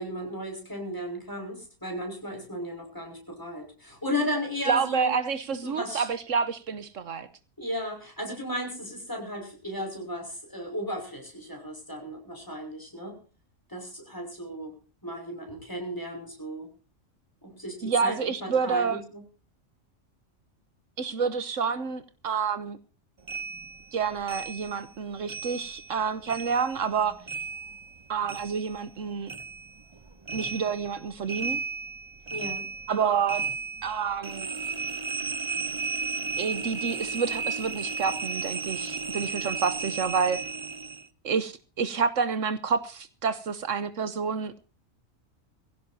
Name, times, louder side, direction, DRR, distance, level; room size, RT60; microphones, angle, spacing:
voice 1, 0.0-5.1 5.6-6.1 7.6-13.2 13.7-14.7 15.0-16.7 17.4-19.2 32.3-33.1, equal, 15° left, 5.7 m, -35 dB
voice 2, 4.7-7.3 17.8-19.0 21.0-22.8 23.9-27.2 28.1-29.3 30.3-31.6 32.9-33.4 33.8-34.5 36.4-40.4 41.2-44.6, right 6 dB, 75° right, 1.4 m, -28 dB
sound 1, 23.3-26.0 26.3-29.0 29.3-41.1, right 4 dB, 25° right, 0.7 m, -34 dB
22.0 x 16.0 x 2.7 m
omnidirectional pair, 1.3 m